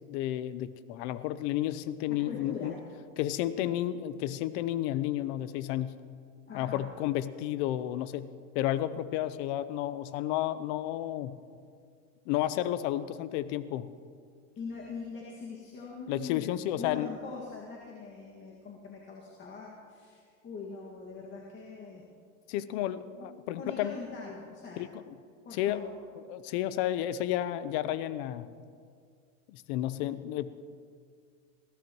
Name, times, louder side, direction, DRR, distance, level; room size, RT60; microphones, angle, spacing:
voice 1, 0.1-2.7 3.2-5.9 6.5-11.4 12.3-13.9 16.1-17.1 22.5-23.9 24.8-25.0 25.5-25.8 26.3-28.5 29.5-30.5, left 13 dB, 55° left, 14 dB, 0.8 m, -32 dB
voice 2, 2.1-2.8 6.5-6.8 14.6-16.5 16.8-22.1 22.7-23.3 23.5-24.8 25.5-25.9, left 4 dB, 30° left, -3 dB, 2.0 m, -42 dB
21.0 x 17.0 x 3.1 m, 2.2 s
supercardioid pair, 125°, 40 cm